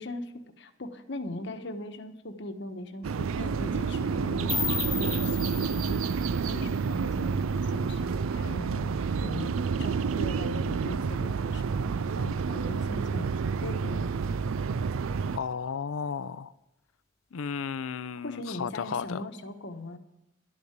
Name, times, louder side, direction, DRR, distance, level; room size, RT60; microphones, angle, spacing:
voice 1, 0.0-8.9 9.2-9.5 9.8-14.1 18.2-20.0, left 1 dB, 60° left, 1.1 m, -40 dB
sound 1, 3.0-15.4, right 5 dB, 90° right, 0.4 m, -29 dB
sound 2, 4.5-7.4, left 7 dB, 15° left, 0.4 m, -35 dB
voice 2, 15.4-16.5 17.3-19.2, left 6 dB, 85° left, 0.5 m, -34 dB
12.0 x 6.5 x 8.8 m
head